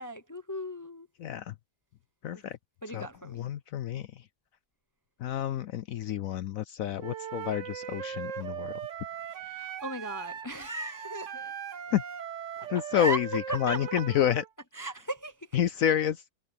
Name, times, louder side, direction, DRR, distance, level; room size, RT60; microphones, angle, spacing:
voice 1, 0.0-1.1 2.3-2.4 2.8-3.5 9.4-11.6 12.6-13.2 13.5-14.0 14.7-15.6, right 2 dB, 30° left, 0.3 m, -37 dB
voice 2, 1.2-1.5 2.2-2.6 2.9-4.3 5.2-8.8 11.9-12.0 12.7-14.4 15.5-16.2, left 10 dB, 70° left, 0.9 m, -29 dB
Wind instrument woodwind instrument, 7.0-14.5, right 9 dB, 55° right, 1.1 m, -39 dB
omnidirectional pair, 1.8 m